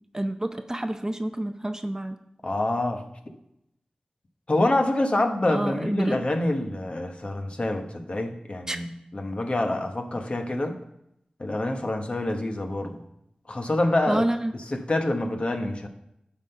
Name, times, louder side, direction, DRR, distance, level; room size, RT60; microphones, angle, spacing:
voice 1, 0.1-2.2 5.5-6.3 8.7-8.8 14.1-14.5, right 1 dB, 20° right, 8 dB, 0.6 m, -28 dB
voice 2, 2.4-3.0 4.5-10.8 11.4-13.0 13.5-14.2 14.7-15.9, left 1 dB, 45° left, 4 dB, 1.2 m, -26 dB
10.0 x 3.9 x 6.6 m, 0.79 s
cardioid pair, 45°, 3 cm